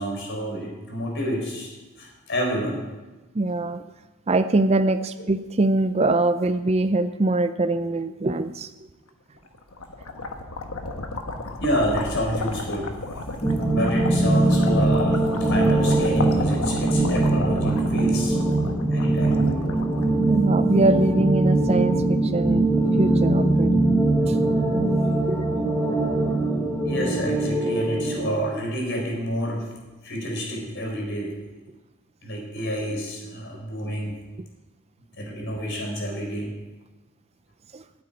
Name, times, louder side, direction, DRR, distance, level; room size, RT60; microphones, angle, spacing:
voice 1, 0.0-1.7 2.0-2.8 11.6-12.9 13.7-18.4 18.9-19.5 26.8-29.6 30.0-31.3 32.2-34.2 35.2-36.5, equal, 55° left, 0 dB, 4.2 m, -29 dB
voice 2, 3.3-3.8 4.3-8.7 20.3-22.7 23.0-23.8 24.3-24.4 25.3-25.4 37.7-37.8, right 2 dB, 30° right, 11 dB, 0.4 m, -23 dB
sound 1, 9.5-20.6, left 2 dB, 75° left, 1.4 m, -33 dB
sound 2, 13.4-28.3, right 2 dB, 10° left, 1.6 m, -21 dB
9.2 x 8.7 x 9.7 m, 1.1 s
head